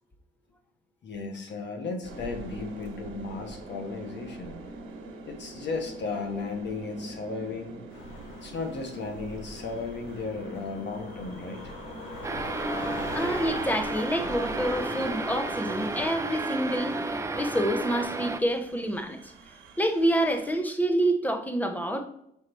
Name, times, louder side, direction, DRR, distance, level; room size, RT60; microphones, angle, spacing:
voice 1, 1.0-4.5 5.3-7.8 8.4-11.7, left 4 dB, 60° left, 4 dB, 1.6 m, -35 dB
sound 1, 2.0-20.6, right 3 dB, 85° right, 1.3 m, -46 dB
sound 2, 7.9-16.0, left 2 dB, 75° left, 2.0 m, -41 dB
sound 3, 12.2-18.4, right 2 dB, 15° right, 0.6 m, -32 dB
voice 2, 13.1-16.9 17.3-19.3 19.8-22.1, right 1 dB, 10° left, 6 dB, 1.1 m, -27 dB
6.2 x 4.8 x 4.6 m, 0.74 s
cardioid pair, 90°, 20 cm